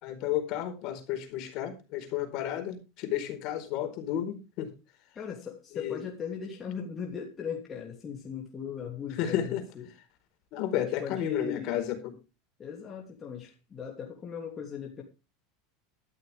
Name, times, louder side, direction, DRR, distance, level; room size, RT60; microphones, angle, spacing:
voice 1, 0.0-4.7 5.7-6.0 9.2-9.6 10.5-12.0, left 11 dB, 50° left, 7 dB, 4.5 m, -32 dB
voice 2, 5.1-9.9 10.7-11.8 12.6-15.0, left 6 dB, 20° left, -1 dB, 2.9 m, -38 dB
13.0 x 13.0 x 3.5 m, 0.28 s
supercardioid pair, 150°, 0 cm